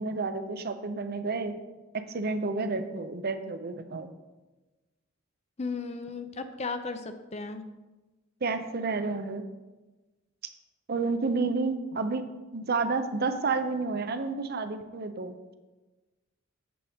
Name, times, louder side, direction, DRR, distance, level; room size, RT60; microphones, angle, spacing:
voice 1, 0.0-1.6 2.1-4.1 8.4-9.5 10.9-12.2 12.5-15.5, right 3 dB, 45° right, 9 dB, 0.6 m, -30 dB
voice 2, 5.6-7.6, left 4 dB, 30° left, 9 dB, 0.5 m, -35 dB
8.5 x 7.6 x 3.5 m, 1.2 s
head